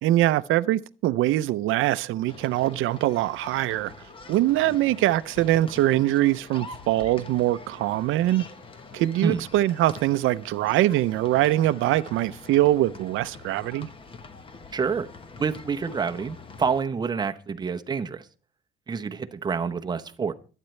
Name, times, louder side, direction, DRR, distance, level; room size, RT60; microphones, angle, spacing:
voice 1, 0.0-3.9 4.3-8.4 8.9-13.9, right 15 dB, 90° right, 0.5 m, -23 dB
sound 1, 2.3-16.8, left 3 dB, 25° left, 1.1 m, -45 dB
voice 2, 14.7-15.1 15.4-18.3 18.9-20.3, right 5 dB, 20° right, 0.8 m, -27 dB
23.5 x 9.1 x 3.2 m
cardioid pair, 165°, 20 cm